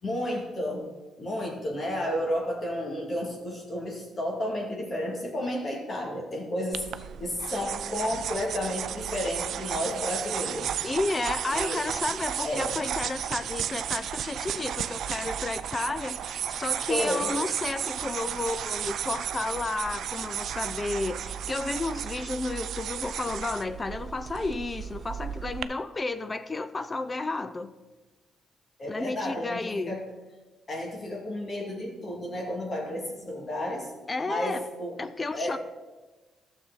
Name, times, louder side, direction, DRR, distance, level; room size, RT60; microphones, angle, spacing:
voice 1, 0.0-0.8 1.2-10.7 11.5-11.8 12.4-12.7 16.9-17.3 28.8-30.0 30.7-33.9 34.3-34.9 35.3-35.6, left 1 dB, 40° left, -2 dB, 2.2 m, -32 dB
sound 1, 6.7-25.6, right 9 dB, 70° right, 0.4 m, -33 dB
voice 2, 10.8-27.7 28.9-30.0 34.1-34.6 35.0-35.6, left 3 dB, 25° left, 12 dB, 0.4 m, -32 dB
12.0 x 7.1 x 4.0 m, 1.2 s
cardioid pair, 90°, 0 cm